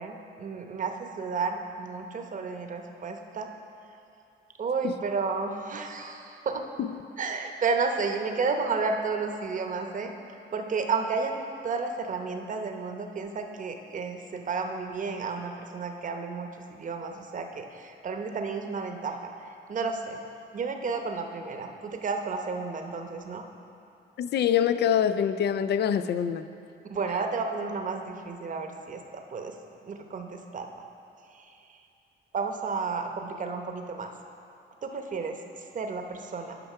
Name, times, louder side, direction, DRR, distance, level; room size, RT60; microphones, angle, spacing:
voice 1, 0.0-3.5 4.6-6.6 7.2-10.1 10.5-11.4 11.6-20.2 20.5-23.4 26.9-29.5 29.8-30.8 31.3-31.8 32.3-34.1 34.8-36.6, right 4 dB, 40° right, 4 dB, 0.8 m, -32 dB
voice 2, 24.2-26.4, left 9 dB, 60° left, 12 dB, 0.4 m, -25 dB
9.1 x 5.6 x 5.5 m, 2.6 s
cardioid pair, 90°, 20 cm